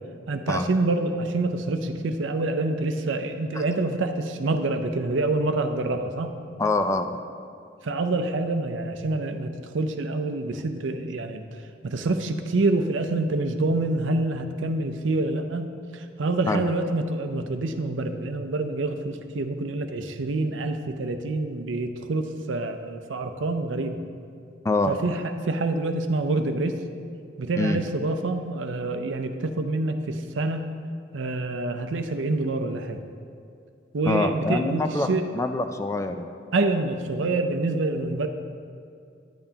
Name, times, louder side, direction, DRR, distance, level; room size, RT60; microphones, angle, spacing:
voice 1, 0.3-6.3 7.8-11.5 11.8-24.0 24.9-26.7 27.4-30.6 31.1-33.0 33.9-35.2 36.5-38.3, right 2 dB, 85° right, 7 dB, 0.6 m, -26 dB
voice 2, 6.6-7.2 16.5-16.7 24.6-25.0 27.6-27.8 34.0-35.1 35.3-36.3, left 2 dB, 15° left, 7 dB, 0.3 m, -25 dB
10.0 x 8.9 x 2.8 m, 2.4 s
head